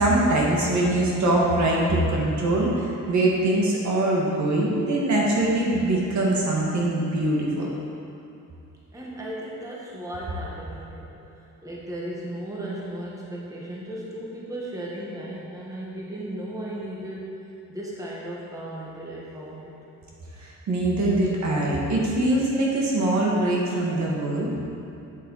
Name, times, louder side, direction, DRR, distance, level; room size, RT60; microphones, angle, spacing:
voice 1, 0.0-7.7 20.4-24.5, right 1 dB, 60° right, -3 dB, 1.7 m, -23 dB
voice 2, 8.9-11.2 11.6-19.7, right 1 dB, 10° right, -5 dB, 1.3 m, -36 dB
8.2 x 7.7 x 4.0 m, 2.8 s
cardioid pair, 135°, 32 cm